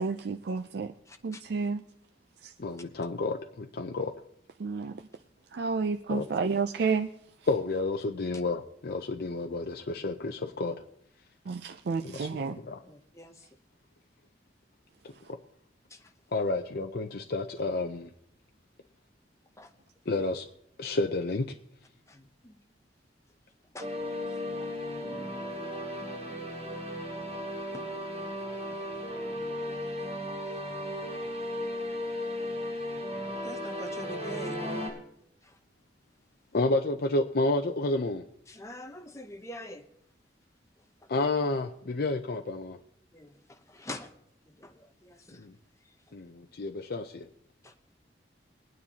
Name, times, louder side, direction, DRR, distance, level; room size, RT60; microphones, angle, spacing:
voice 1, 0.0-0.9 1.2-1.8 2.4-2.5 4.6-5.0 5.5-7.1 11.5-12.6, right 4 dB, 65° right, 0.4 m, -30 dB
voice 2, 1.1-1.4 12.8-13.5 15.9-16.1 19.6-19.7 22.1-22.6 23.7-23.9 24.6-24.7 25.6-25.9 27.7-27.9 28.7-28.8 33.4-34.6 35.4-35.6 38.5-39.8 43.1-44.1 44.5-45.5 47.6-47.7, left 1 dB, 15° left, 0.9 m, -45 dB
voice 3, 2.6-4.1 6.1-6.3 7.5-10.8 12.0-12.8 15.3-15.4 16.3-18.1 20.1-20.5 20.8-21.6 36.5-38.2 41.1-42.8 45.4-45.6 46.1-47.3, left 2 dB, 60° left, 0.6 m, -30 dB
sound 1, 23.8-34.9, left 1 dB, 35° right, 3.3 m, -35 dB
22.5 x 9.5 x 2.8 m
head